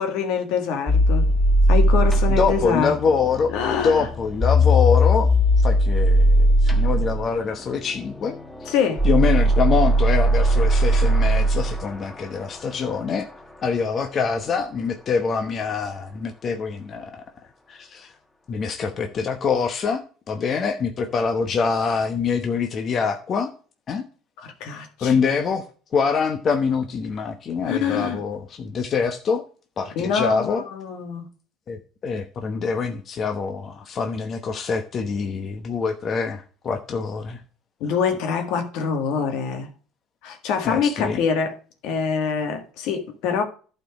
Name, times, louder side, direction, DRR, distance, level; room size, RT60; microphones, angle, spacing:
voice 1, 0.0-1.3 1.7-2.9 3.5-4.1 8.6-9.0 24.4-25.2 27.6-28.2 29.9-31.2 37.8-39.7 40.2-41.6 41.8-43.4, left 6 dB, 75° left, 1.7 m, -25 dB
sound 1, 0.9-12.1, equal, 10° left, 1.4 m, -19 dB
voice 2, 2.3-3.5 3.8-5.3 5.6-8.4 9.0-13.3 13.6-17.2 17.7-18.1 18.5-20.0 20.3-23.5 23.9-24.0 25.0-29.4 29.8-30.6 31.7-37.4 37.8-37.9 40.6-41.2, left 5 dB, 40° left, 1.0 m, -25 dB
11.5 x 4.5 x 4.7 m
supercardioid pair, 100°, 0 cm